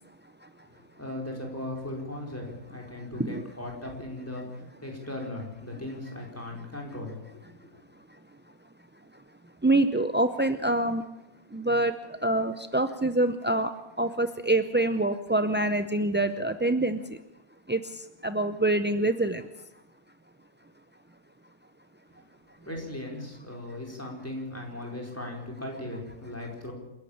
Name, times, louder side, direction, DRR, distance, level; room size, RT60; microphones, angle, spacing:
voice 1, 1.0-4.4 4.8-7.2 22.7-26.7, left 1 dB, 10° left, -1 dB, 4.7 m, -37 dB
voice 2, 3.0-3.5 6.6-6.8 7.6-8.2 9.1-11.1 11.5-13.7 14.0-17.2 17.7-19.7, right 2 dB, 15° right, 9 dB, 0.3 m, -27 dB
27.5 x 11.5 x 8.7 m, 0.93 s
omnidirectional pair, 1.4 m